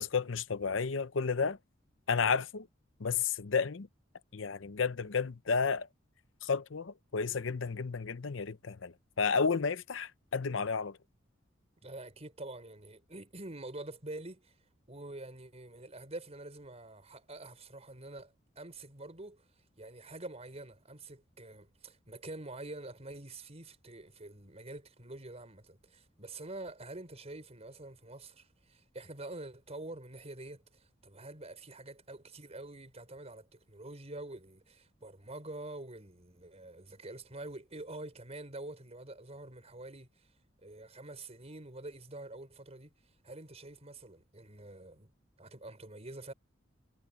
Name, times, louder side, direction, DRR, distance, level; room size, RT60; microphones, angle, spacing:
voice 1, 0.0-1.6 2.1-2.7 3.0-3.9 4.3-5.9 6.4-11.0, left 5 dB, 75° left, 0.7 m, -32 dB
voice 2, 11.8-14.5 14.9-19.4 19.8-40.3 40.6-42.9 43.2-45.1 45.4-46.3, right 2 dB, 35° right, 5.1 m, -46 dB
head